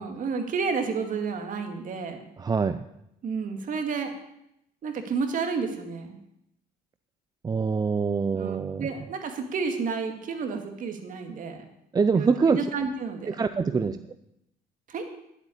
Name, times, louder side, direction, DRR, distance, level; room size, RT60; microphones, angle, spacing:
voice 1, 0.0-2.3 3.2-4.1 4.8-6.2 8.3-11.6 12.1-13.4 13.6-13.9 14.9-15.1, right 5 dB, 50° right, 5 dB, 2.3 m, -31 dB
voice 2, 2.4-2.8 7.4-8.9 11.9-12.6 13.3-14.0, right 5 dB, 25° right, 11 dB, 0.5 m, -24 dB
11.5 x 8.1 x 8.6 m, 0.80 s
cardioid pair, 110°, 17 cm